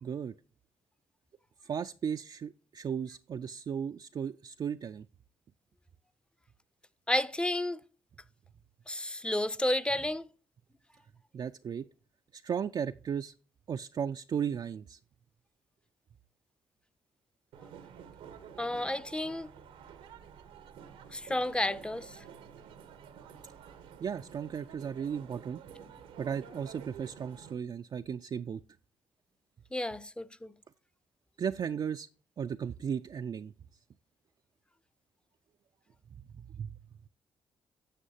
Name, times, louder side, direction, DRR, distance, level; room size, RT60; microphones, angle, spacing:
voice 1, 0.0-0.3 1.6-5.1 11.3-11.8 12.3-13.3 13.7-15.0 24.0-25.6 26.2-28.6 31.4-32.1 32.4-33.5 36.3-36.7, right 7 dB, 45° right, 0.4 m, -35 dB
voice 2, 7.1-7.8 8.9-10.3 18.6-19.5 21.1-22.1 29.7-30.5, left 1 dB, 10° left, 0.6 m, -31 dB
sound 1, 17.5-27.5, right 7 dB, 90° right, 0.9 m, -50 dB
10.0 x 7.2 x 2.8 m
supercardioid pair, 55°, 10 cm